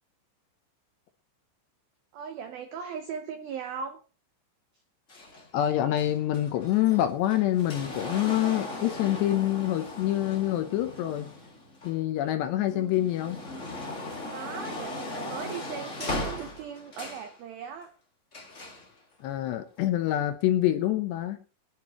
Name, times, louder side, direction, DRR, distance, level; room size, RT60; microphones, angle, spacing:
voice 1, 2.1-4.0 12.5-13.1 14.3-17.9, right 7 dB, 80° right, 7 dB, 2.1 m, -39 dB
sound 1, 5.1-12.3 12.8-17.3 18.3-18.9 19.8-19.9, left 2 dB, 45° left, 0.9 m, -38 dB
voice 2, 5.5-11.3 11.8-13.4 19.2-21.4, left 13 dB, 75° left, 7 dB, 2.7 m, -26 dB
23.0 x 11.0 x 3.0 m, 0.35 s
omnidirectional pair, 5.6 m